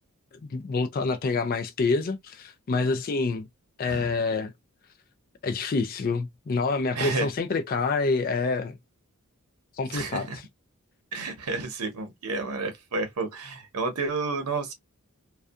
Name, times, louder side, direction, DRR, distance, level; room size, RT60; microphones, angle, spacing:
voice 1, 0.5-3.5 3.8-4.5 5.4-8.8 9.8-10.4, left 4 dB, 40° left, 0.3 m, -27 dB
voice 2, 6.9-7.3 9.9-10.4 11.1-14.7, right 3 dB, 85° right, 0.8 m, -31 dB
2.6 x 2.2 x 2.4 m
head